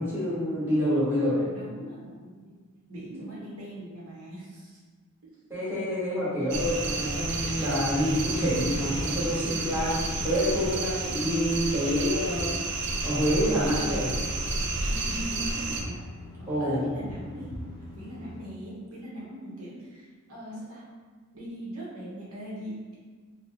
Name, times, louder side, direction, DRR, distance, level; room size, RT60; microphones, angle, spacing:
voice 1, 0.0-1.4 5.5-10.0 10.2-12.5 13.0-14.1 16.5-16.8, equal, 10° right, -12 dB, 1.3 m, -27 dB
voice 2, 1.3-2.6 2.9-4.8 5.2-5.3 14.9-16.0 16.4-17.6 17.9-20.8 21.3-22.9, right 1 dB, 70° right, -7 dB, 0.9 m, -40 dB
sound 1, 6.5-15.8, right 3 dB, 50° right, 0.4 m, -31 dB
sound 2, 7.2-7.3 8.5-8.6 8.9-9.0 10.2-10.3 10.6-10.8 11.9-12.0 12.4-12.5 13.6-13.7 14.1-14.2 15.4-15.5 15.8-15.9 17.1-17.2 17.5-17.6, left 1 dB, 90° left, 0.4 m, -39 dB
sound 3, 9.9-18.4, left 3 dB, 20° left, 0.5 m, -45 dB
2.9 x 2.1 x 3.7 m, 1.5 s
head